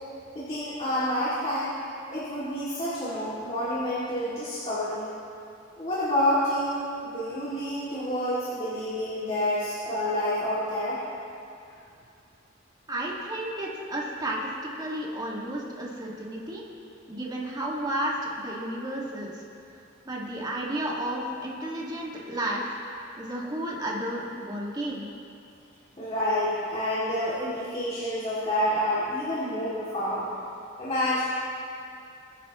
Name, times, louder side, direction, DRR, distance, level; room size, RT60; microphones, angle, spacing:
voice 1, 0.3-1.7 2.1-5.1 5.8-11.0 26.0-30.2 30.8-31.2, left 1 dB, 35° left, -11 dB, 2.5 m, -28 dB
voice 2, 12.9-16.7 17.1-19.4 20.1-22.8 23.2-25.1, right 1 dB, 20° right, -4 dB, 1.9 m, -32 dB
22.0 x 10.0 x 3.1 m, 2.5 s
head